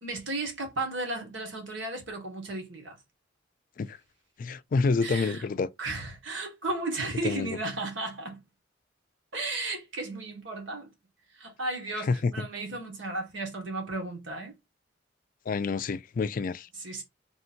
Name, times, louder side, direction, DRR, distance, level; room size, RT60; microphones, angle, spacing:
voice 1, 0.0-3.0 5.0-5.5 5.8-8.4 9.3-10.9 11.3-14.6 16.8-17.0, right 2 dB, 85° right, 1.7 m, -34 dB
voice 2, 4.4-5.7 7.2-7.6 12.0-12.5 15.5-16.7, left 4 dB, 45° left, 0.3 m, -28 dB
3.6 x 2.7 x 4.3 m
head